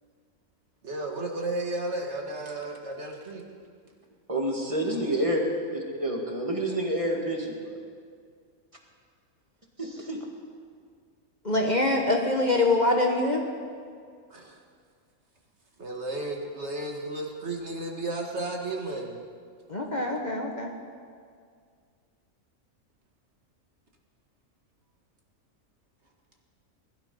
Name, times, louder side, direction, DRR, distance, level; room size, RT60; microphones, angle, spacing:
voice 1, 0.8-3.4 14.3-14.6 15.8-19.2, right 2 dB, 50° right, 0 dB, 1.9 m, -33 dB
voice 2, 4.3-5.4 6.0-7.8 9.8-10.2, right 1 dB, 20° right, 0 dB, 2.1 m, -28 dB
voice 3, 11.4-13.4 19.7-20.7, left 2 dB, 35° left, 1 dB, 1.2 m, -24 dB
20.0 x 12.5 x 5.6 m, 2.1 s
omnidirectional pair, 1.5 m